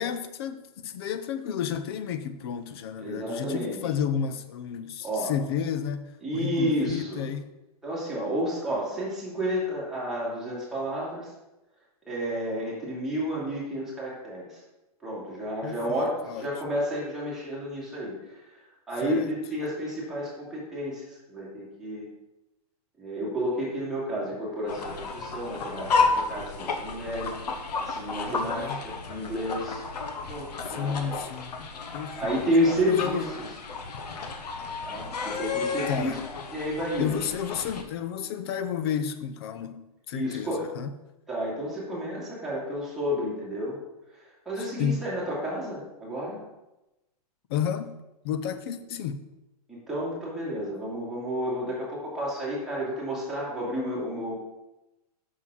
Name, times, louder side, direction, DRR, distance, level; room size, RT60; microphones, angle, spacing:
voice 1, 0.0-6.1 6.3-7.5 15.6-16.5 19.0-19.3 28.2-28.8 30.7-31.6 31.9-32.5 32.8-33.3 35.5-36.5 37.0-40.9 44.6-45.1 47.5-48.0 48.2-49.2, left 8 dB, 40° left, 0.6 m, -32 dB
voice 2, 3.0-3.8 5.0-5.3 6.2-7.2 7.8-11.3 12.1-14.6 15.0-18.4 18.9-22.1 23.0-25.9 26.1-27.3 27.8-29.8 30.3-31.1 32.2-33.3 34.8-36.2 36.5-37.2 40.1-40.6 41.3-43.8 44.5-46.4 49.7-54.3, equal, ahead, 2.4 m, -31 dB
sound 1, 24.7-37.8, left 4 dB, 80° left, 1.2 m, -32 dB
6.3 x 5.6 x 6.1 m
hypercardioid pair, 160°, 20 cm